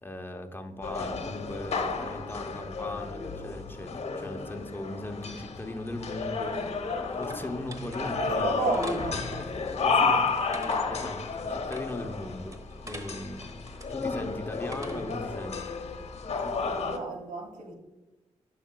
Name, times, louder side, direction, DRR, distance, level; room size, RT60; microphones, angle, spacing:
voice 1, 0.0-6.9 7.2-9.5 9.8-15.7, left 1 dB, 20° left, 0.8 m, -39 dB
sound 1, 0.8-17.0, left 4 dB, 60° left, 0.9 m, -32 dB
sound 2, 6.8-15.3, right 1 dB, 25° right, 1.2 m, -47 dB
voice 2, 8.2-9.2 10.7-11.0 16.7-17.7, right 3 dB, 85° right, 1.5 m, -33 dB
10.5 x 5.7 x 2.2 m
cardioid pair, 70°, 12 cm